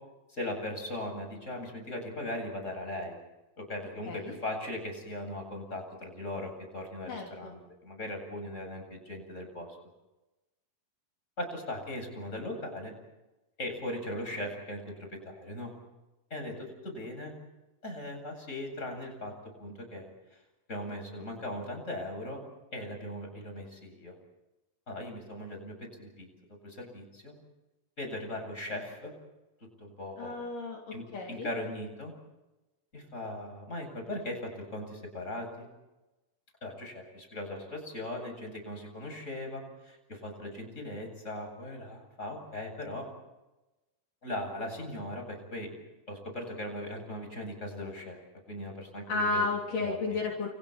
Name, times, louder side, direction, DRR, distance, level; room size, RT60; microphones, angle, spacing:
voice 1, 0.3-3.2 3.6-9.7 11.4-12.9 13.6-14.8 15.1-15.7 16.3-17.3 17.8-19.3 19.6-20.1 20.7-22.4 22.7-24.1 24.9-26.3 26.6-27.3 28.0-29.1 29.8-30.4 30.9-32.1 32.9-35.7 36.6-43.1 44.2-45.7 46.1-48.2 48.5-49.5 49.8-50.2, left 1 dB, 15° left, 3 dB, 8.3 m, -39 dB
voice 2, 7.1-7.5 30.2-31.5 49.1-50.5, left 3 dB, 60° left, -1 dB, 4.8 m, -33 dB
29.5 x 29.0 x 4.5 m, 0.99 s
omnidirectional pair, 4.4 m